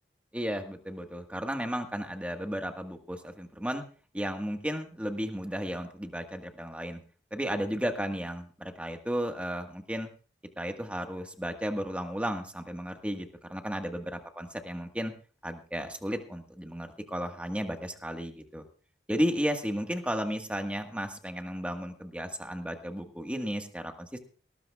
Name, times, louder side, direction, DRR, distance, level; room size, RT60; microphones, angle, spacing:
voice 1, 0.3-3.8 4.1-7.0 7.3-10.1 10.6-15.1 15.4-18.6 19.1-24.2, equal, 5° right, 4 dB, 1.5 m, -34 dB
19.0 x 19.0 x 2.4 m, 0.40 s
head